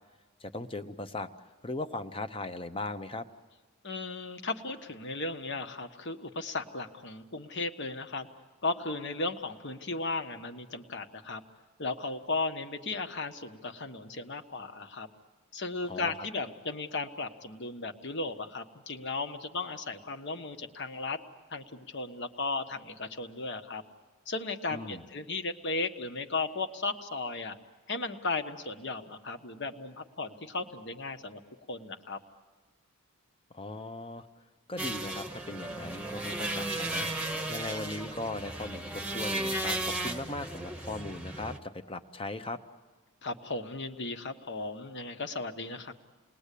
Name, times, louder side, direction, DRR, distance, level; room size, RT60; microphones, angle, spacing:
voice 1, 0.4-1.3 1.6-3.3 15.9-16.1 24.7-25.0 33.5-34.3 34.7-42.6, left 2 dB, 25° left, 9 dB, 0.9 m, -38 dB
voice 2, 3.8-8.3 8.6-11.4 11.8-15.1 15.5-21.2 21.5-23.8 24.3-27.6 27.9-31.4 31.7-32.2 43.2-45.9, left 3 dB, 50° left, 7 dB, 1.4 m, -35 dB
sound 1, 34.8-41.6, right 1 dB, 5° right, 1.1 m, -35 dB
29.0 x 20.5 x 8.5 m, 1.4 s
head